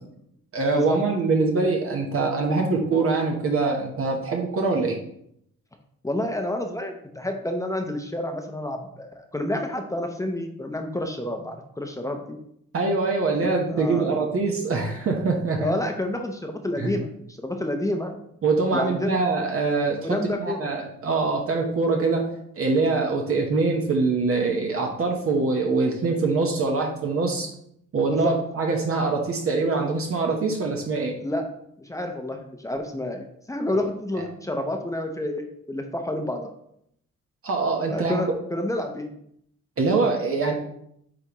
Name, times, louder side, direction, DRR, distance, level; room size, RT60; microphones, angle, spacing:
voice 1, 0.5-5.0 12.7-15.7 16.8-16.9 18.4-20.0 20.4-22.2 22.5-27.5 27.9-31.1 37.4-38.2 39.8-40.5, right 3 dB, 50° right, 1 dB, 1.1 m, -24 dB
voice 2, 6.0-12.4 13.4-14.3 15.6-18.1 18.7-19.2 20.0-20.7 28.1-28.3 31.2-31.5 31.8-36.5 37.9-39.1, left 1 dB, 10° left, 4 dB, 0.8 m, -29 dB
9.0 x 3.5 x 3.0 m, 0.72 s
cardioid pair, 90°, 30 cm